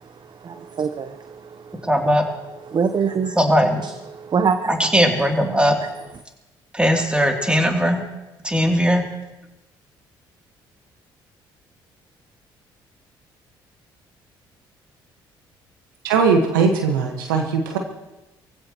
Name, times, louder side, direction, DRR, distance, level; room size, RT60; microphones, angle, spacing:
voice 1, 0.0-1.9 2.7-3.4 3.8-4.7, right 6 dB, 45° right, 9 dB, 0.9 m, -25 dB
voice 2, 1.8-2.3 3.4-3.8 4.7-5.8 6.7-8.0 8.4-9.1, equal, 10° right, 1 dB, 3.1 m, -19 dB
voice 3, 16.0-17.8, right 5 dB, 90° right, 4 dB, 1.6 m, -19 dB
23.5 x 15.5 x 3.1 m, 1.0 s
hypercardioid pair, 55°, 11 cm